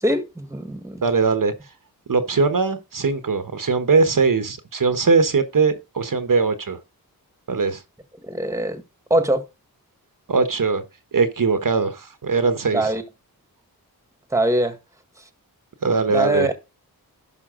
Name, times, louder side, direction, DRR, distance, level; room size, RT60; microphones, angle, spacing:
voice 1, 0.0-1.0 8.2-8.8 9.1-9.4 12.7-13.0 14.3-14.8 16.1-16.5, right 1 dB, 10° right, 1.6 m, -22 dB
voice 2, 1.0-1.5 2.1-6.8 7.5-7.8 10.3-10.8 11.1-12.9 15.8-16.5, right 4 dB, 55° right, 1.2 m, -20 dB
11.0 x 5.7 x 3.8 m
cardioid pair, 65°, 38 cm